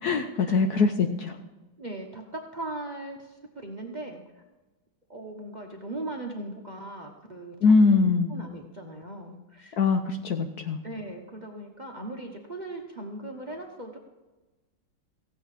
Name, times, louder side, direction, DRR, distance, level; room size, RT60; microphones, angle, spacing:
voice 1, 0.0-1.4 7.6-8.3 9.8-10.8, left 4 dB, 65° left, 7 dB, 1.0 m, -22 dB
voice 2, 1.8-4.4 5.1-7.5 7.8-9.8 10.8-14.0, right 2 dB, 30° right, 2 dB, 0.9 m, -39 dB
15.5 x 8.7 x 4.9 m, 1.1 s
omnidirectional pair, 2.2 m